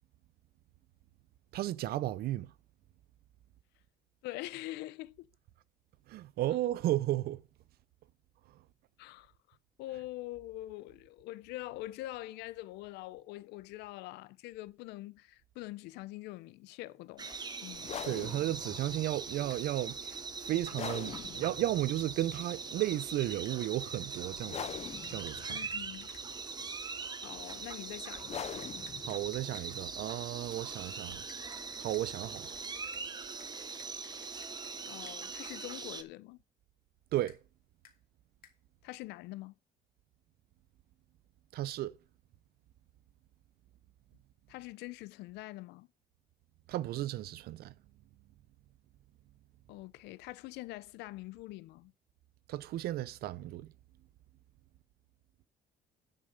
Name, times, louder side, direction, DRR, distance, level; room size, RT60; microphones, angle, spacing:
voice 1, 1.5-2.5 6.1-7.4 18.1-24.6 25.1-25.6 29.0-31.2 31.8-32.5 37.1-37.4 41.5-42.0 46.7-47.7 52.5-53.7, right 14 dB, 70° right, 0.5 m, -34 dB
voice 2, 4.2-5.3 9.0-18.0 25.5-26.1 26.4-26.5 27.2-28.6 34.9-36.4 38.8-39.6 44.5-45.9 49.7-51.9, left 17 dB, 90° left, 0.6 m, -44 dB
sound 1, 17.2-36.0, right 4 dB, 25° right, 0.8 m, -42 dB
sound 2, 17.7-33.1, left 9 dB, 40° left, 0.5 m, -47 dB
sound 3, 19.5-19.6 20.8-20.9 23.2-23.6 25.0-26.3 28.4-29.7 31.3-33.0 33.4-35.2 37.3-37.4 37.8-38.0 38.4-38.5, left 9 dB, 60° left, 2.0 m, -60 dB
10.5 x 5.6 x 5.1 m
cardioid pair, 110°, 17 cm